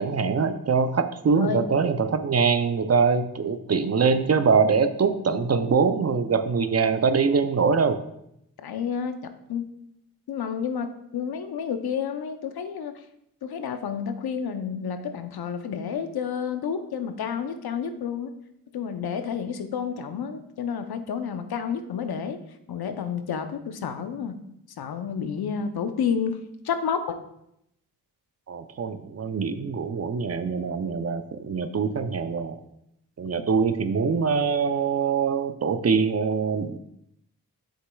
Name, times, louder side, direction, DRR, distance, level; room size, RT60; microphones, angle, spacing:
voice 1, 0.0-8.0 28.5-32.6 33.2-36.8, right 5 dB, 40° right, 10 dB, 0.6 m, -23 dB
voice 2, 1.4-1.7 8.6-9.7 10.3-13.0 13.4-18.3 18.7-22.4 22.7-24.4 24.8-26.4 26.6-27.2, left 7 dB, 70° left, 9 dB, 0.7 m, -30 dB
7.8 x 6.4 x 2.3 m, 0.77 s
cardioid pair, 45°, 38 cm